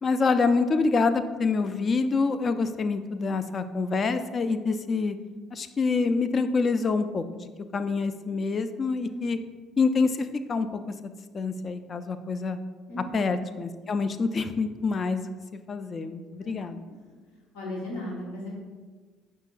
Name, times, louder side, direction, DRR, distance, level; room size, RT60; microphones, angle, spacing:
voice 1, 0.0-5.2 5.5-9.4 9.8-10.7 11.3-12.6 13.1-15.3 15.7-16.8, left 4 dB, 40° left, 10 dB, 0.3 m, -26 dB
voice 2, 16.4-17.0 17.5-18.5, left 1 dB, 80° left, -3 dB, 1.1 m, -37 dB
5.3 x 3.7 x 2.5 m, 1.4 s
hypercardioid pair, 65°, 0 cm